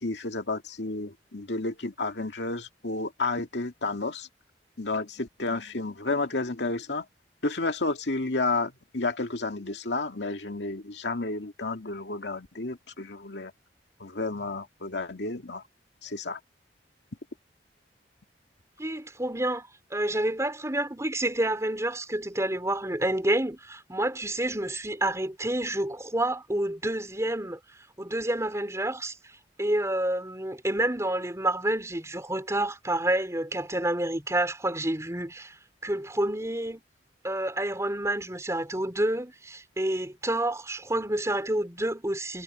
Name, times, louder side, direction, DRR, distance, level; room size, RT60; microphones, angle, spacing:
voice 1, 0.0-4.3 4.8-7.0 7.4-13.5 14.0-15.6 16.0-16.4, left 3 dB, 80° left, 2.2 m, -31 dB
voice 2, 18.8-27.6 28.0-29.3 29.6-35.6 35.8-36.8 37.2-42.4, right 1 dB, 15° right, 4.3 m, -29 dB
head